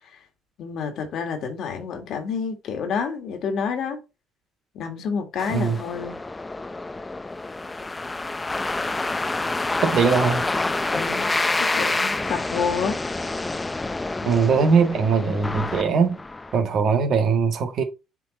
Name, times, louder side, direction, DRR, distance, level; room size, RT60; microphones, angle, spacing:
voice 1, 0.6-4.0 4.7-6.2 10.9-11.3 11.6-13.0, left 6 dB, 65° left, 2.0 m, -29 dB
sound 1, 5.4-16.6, left 2 dB, 20° left, 0.6 m, -28 dB
voice 2, 9.8-10.5 14.2-16.2 16.5-17.8, right 5 dB, 60° right, 1.6 m, -20 dB
7.0 x 4.2 x 4.3 m
hypercardioid pair, 55°, 0 cm